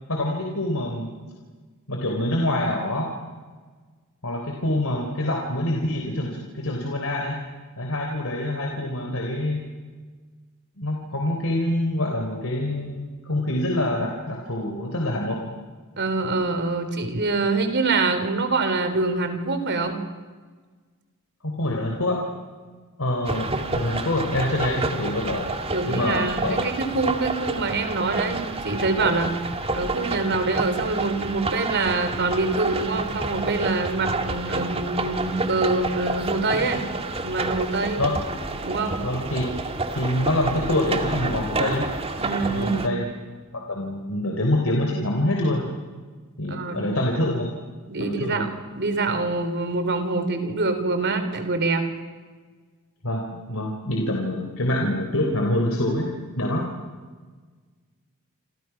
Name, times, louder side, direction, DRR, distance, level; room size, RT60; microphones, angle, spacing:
voice 1, 0.1-1.1 1.9-3.1 4.2-7.4 7.8-9.6 10.8-15.4 21.4-22.2 23.0-25.4 25.9-26.7 38.0-38.1 39.0-39.5 39.9-41.9 42.5-43.1 43.7-45.6 46.4-47.5 48.0-48.4 53.0-56.1 56.3-56.7, left 1 dB, 70° left, 0 dB, 3.6 m, -25 dB
voice 2, 16.0-20.0 25.7-29.4 29.7-36.8 37.2-38.2 38.6-39.0 42.2-43.0 46.5-46.9 47.9-48.5 48.8-51.9, right 3 dB, 55° right, 8 dB, 3.5 m, -25 dB
sound 1, 23.2-42.9, right 2 dB, 25° right, 1.9 m, -29 dB
28.5 x 26.5 x 5.9 m, 1.4 s
head